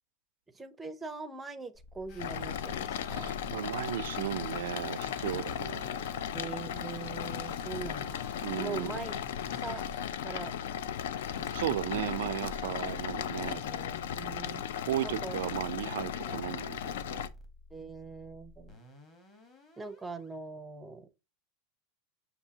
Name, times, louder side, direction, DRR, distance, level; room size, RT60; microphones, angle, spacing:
voice 1, 0.5-3.4 6.3-8.2 8.5-9.2 9.5-9.8 10.2-10.5 11.4-11.5 13.5-14.6 15.0-15.4 16.2-16.4 17.7-18.8 19.8-21.1, right 4 dB, 10° right, 0.5 m, -42 dB
sound 1, 1.7-20.3, left 1 dB, 20° left, 1.2 m, -54 dB
sound 2, 2.1-10.0, left 5 dB, 40° left, 0.9 m, -54 dB
sound 3, 2.2-17.3, left 9 dB, 85° left, 0.4 m, -36 dB
voice 2, 3.1-6.1 8.4-9.0 11.5-13.6 14.9-17.2, right 13 dB, 85° right, 0.3 m, -35 dB
6.7 x 2.7 x 2.8 m
supercardioid pair, 160°, 0 cm